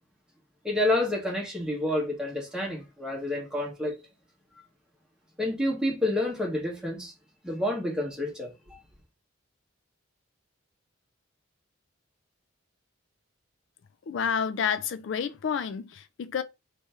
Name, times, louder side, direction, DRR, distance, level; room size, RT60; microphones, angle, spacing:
voice 1, 0.6-3.9 5.4-7.1 7.4-8.8, left 1 dB, 5° right, 1.4 m, -29 dB
voice 2, 14.1-16.4, left 7 dB, 60° left, 0.3 m, -29 dB
3.4 x 3.2 x 4.3 m
head